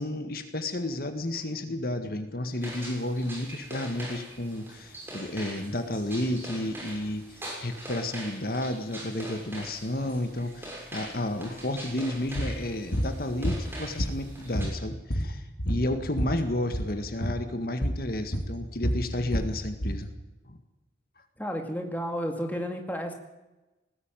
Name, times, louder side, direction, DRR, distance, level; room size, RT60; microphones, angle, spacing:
voice 1, 0.0-20.1 20.5-20.6, left 1 dB, 55° left, 7 dB, 1.8 m, -32 dB
sound 1, 2.6-14.7, right 1 dB, 10° right, 6.3 m, -43 dB
sound 2, 12.4-12.5 12.9-13.1 13.4-14.3 14.5-16.4 16.7-16.9 17.2-17.4 17.8-18.0 18.3-20.0, equal, 85° left, 2.5 m, -29 dB
voice 2, 21.4-23.1, equal, 10° left, 3 dB, 2.2 m, -32 dB
19.5 x 14.5 x 9.2 m, 1.1 s
head